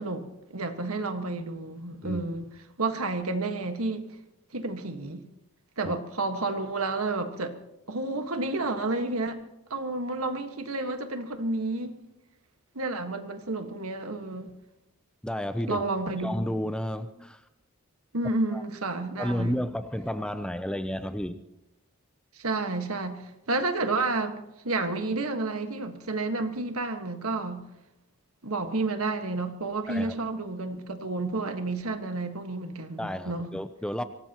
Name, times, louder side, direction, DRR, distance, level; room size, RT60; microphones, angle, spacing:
voice 1, 0.0-2.5 2.8-4.0 4.5-5.2 5.8-7.5 7.9-9.4 9.7-11.9 12.7-14.5 15.7-16.4 18.1-19.6 22.3-24.4 24.6-27.6 28.4-33.5, right 2 dB, 80° right, 1.6 m, -30 dB
voice 2, 15.2-15.8 16.2-17.4 18.5-18.6 19.2-21.4 29.9-30.2 33.0-34.0, equal, 5° left, 0.6 m, -31 dB
24.0 x 18.5 x 3.0 m
head